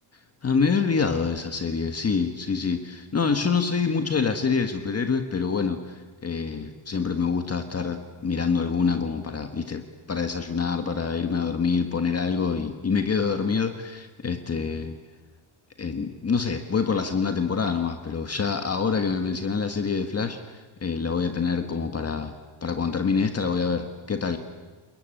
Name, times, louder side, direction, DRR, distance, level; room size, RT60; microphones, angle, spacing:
voice 1, 0.4-9.8 10.1-14.9 15.8-22.3 22.6-24.4, left 5 dB, 30° left, 6 dB, 1.5 m, -26 dB
29.0 x 21.5 x 9.1 m, 1.3 s
wide cardioid pair, 165°, 48 cm